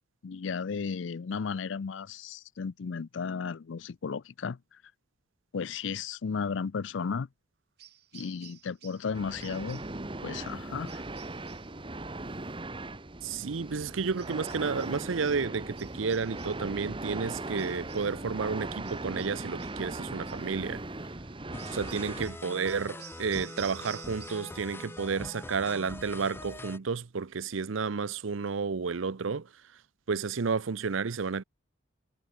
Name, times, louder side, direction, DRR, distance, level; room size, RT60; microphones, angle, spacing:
voice 1, 0.2-4.8 5.5-7.3 8.1-9.8 10.2-11.0, left 5 dB, 65° left, 0.5 m, -34 dB
sound 1, 7.8-9.1 9.4-10.0 10.9-11.7 14.2-15.0 15.8-16.7 17.6-18.2 18.8-19.9 20.3-20.5 21.6-24.6 24.9-25.4, right 12 dB, 55° right, 2.3 m, -52 dB
sound 2, 9.1-22.3, right 2 dB, 25° right, 1.3 m, -39 dB
voice 2, 13.2-20.8 21.7-29.5 30.1-31.4, right 5 dB, 80° right, 0.6 m, -31 dB
sound 3, 21.5-26.8, left 2 dB, 10° left, 0.6 m, -43 dB
head